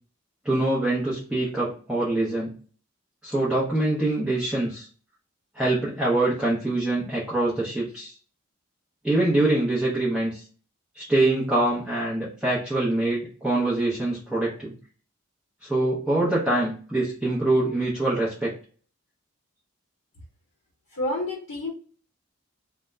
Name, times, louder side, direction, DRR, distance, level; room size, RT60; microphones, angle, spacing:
voice 1, 0.4-2.5 3.2-4.9 5.5-8.1 9.0-10.4 10.9-14.7 15.6-18.5, right 2 dB, 5° right, -8 dB, 0.5 m, -24 dB
voice 2, 20.9-21.7, left 1 dB, 60° left, -3 dB, 0.8 m, -29 dB
2.1 x 2.0 x 3.3 m, 0.42 s
head